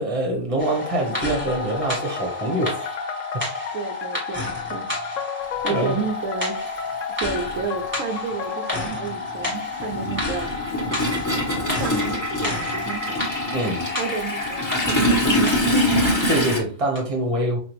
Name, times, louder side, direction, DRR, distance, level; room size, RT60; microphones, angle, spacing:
voice 1, 0.0-2.8 3.3-3.4 5.7-5.9 13.5-13.8 16.3-17.6, right 1 dB, 25° right, 1 dB, 1.0 m, -24 dB
sound 1, 0.6-16.5 16.9-17.0, left 3 dB, 10° right, 1.5 m, -30 dB
sound 2, 1.5-8.9, left 6 dB, 70° left, 1.0 m, -35 dB
voice 2, 3.7-4.9 5.6-6.5 7.2-10.5 11.7-13.2 14.0-15.6, right 5 dB, 75° right, 5 dB, 1.0 m, -31 dB
Toilet flush, 6.1-6.2 7.5-7.6 8.0-16.6, equal, 15° left, 1.1 m, -24 dB
5.2 x 2.5 x 3.0 m, 0.42 s
omnidirectional pair, 1.4 m